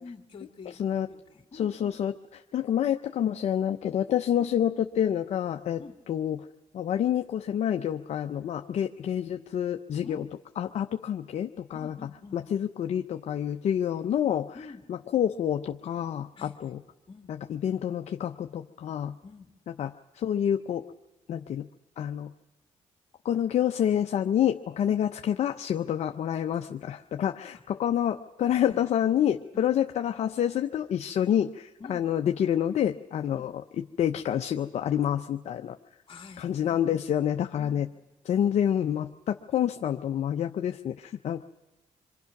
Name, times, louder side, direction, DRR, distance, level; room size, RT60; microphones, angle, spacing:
voice 1, 0.0-0.8 1.1-2.0 4.4-4.5 5.8-6.0 10.0-10.3 11.7-12.4 14.5-14.9 16.4-16.8 17.1-17.4 19.2-19.5 24.8-25.0 27.5-27.6 28.6-28.9 29.5-29.7 31.8-32.1 33.3-33.5 36.1-37.1 37.6-37.9, left 4 dB, 45° left, 4 dB, 2.6 m, -47 dB
voice 2, 1.5-2.1 2.5-5.8 6.1-6.4 6.7-10.2 10.6-11.9 12.3-14.6 14.9-16.8 17.5-19.2 19.8-20.8 21.3-21.7 22.0-22.3 23.2-33.5 34.0-35.8 36.4-37.9 38.3-41.4, left 10 dB, 65° left, 6 dB, 0.8 m, -28 dB
27.0 x 23.5 x 6.0 m, 1.1 s
cardioid pair, 75°, 12 cm